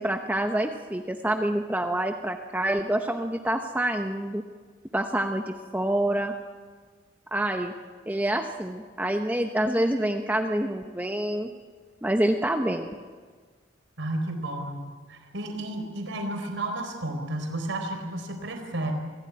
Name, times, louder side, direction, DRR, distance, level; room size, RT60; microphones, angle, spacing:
voice 1, 0.0-4.4 4.9-6.3 7.3-7.7 8.1-11.5 12.0-12.9, right 1 dB, 10° right, 4 dB, 0.9 m, -27 dB
voice 2, 14.0-18.9, right 1 dB, 70° right, 5 dB, 4.3 m, -32 dB
26.5 x 17.0 x 9.6 m, 1.5 s
head